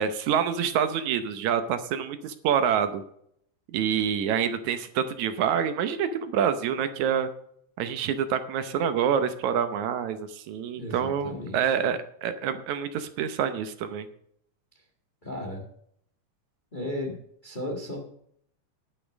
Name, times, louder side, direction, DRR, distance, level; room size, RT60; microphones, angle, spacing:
voice 1, 0.0-3.0 3.7-7.3 7.8-14.1, right 8 dB, 75° right, 10 dB, 2.1 m, -27 dB
voice 2, 10.8-11.8 15.2-15.6 16.7-17.1 17.4-18.0, left 1 dB, 20° left, 3 dB, 1.3 m, -35 dB
10.0 x 9.1 x 5.2 m, 0.69 s
omnidirectional pair, 3.5 m